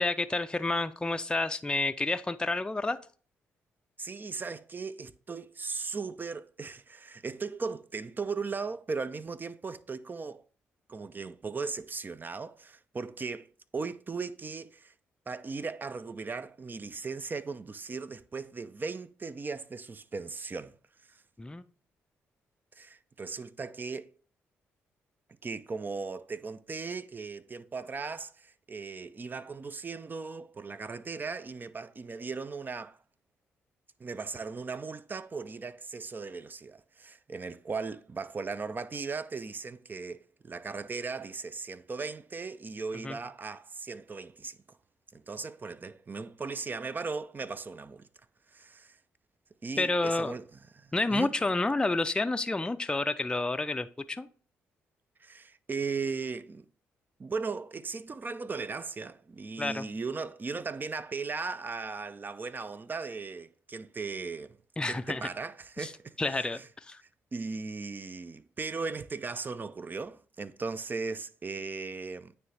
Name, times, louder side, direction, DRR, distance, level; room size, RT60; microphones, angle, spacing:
voice 1, 0.0-3.0 21.4-21.6 43.0-43.2 49.8-50.3 50.9-54.3 59.6-59.9 64.8-65.2 65.8-65.9 66.2-67.0, left 2 dB, 15° left, 0.5 m, -29 dB
voice 2, 4.0-10.4 10.9-14.9 15.3-20.7 21.1-21.2 22.8-24.1 25.4-33.0 34.0-44.6 45.1-48.1 48.5-49.0 49.6-50.4 50.8-51.3 55.2-56.6 57.2-64.6 64.9-66.7 67.3-72.3, right 4 dB, 35° right, 0.5 m, -37 dB
9.3 x 3.2 x 3.3 m
supercardioid pair, 50°, 6 cm